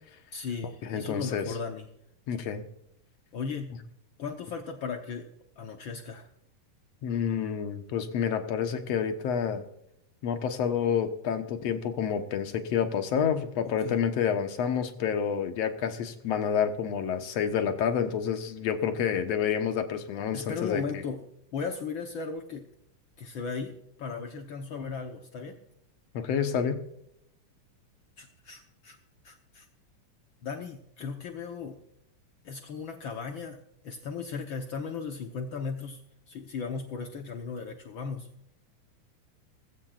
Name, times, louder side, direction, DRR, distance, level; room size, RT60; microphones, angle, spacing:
voice 1, 0.3-1.9 3.3-3.8 4.2-5.3 5.6-6.3 11.6-11.7 13.8-14.0 20.3-21.3 21.5-22.7 23.2-25.6 28.2-29.0 29.2-29.7 30.4-31.8 32.4-38.3, left 5 dB, 80° left, 4 dB, 1.1 m, -36 dB
voice 2, 0.8-1.5 2.3-2.6 7.0-9.6 10.2-20.8 26.1-26.8, left 7 dB, 60° left, 7 dB, 2.1 m, -29 dB
19.5 x 15.5 x 2.5 m, 0.76 s
omnidirectional pair, 3.7 m